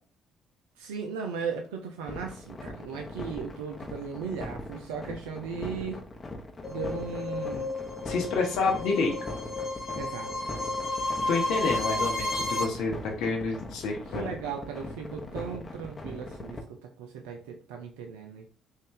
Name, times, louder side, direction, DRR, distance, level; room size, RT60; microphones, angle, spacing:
voice 1, 0.8-6.0 6.7-7.7 9.9-10.3 14.1-18.4, right 6 dB, 80° right, 3 dB, 0.4 m, -37 dB
sound 1, 2.1-16.6, left 2 dB, 30° left, 0.9 m, -40 dB
sound 2, 6.6-12.6, left 2 dB, 55° left, 1.2 m, -32 dB
voice 2, 8.1-9.1 11.3-14.2, left 4 dB, 70° left, 1 dB, 0.7 m, -28 dB
3.5 x 2.6 x 3.7 m, 0.41 s
hypercardioid pair, 50°, 0 cm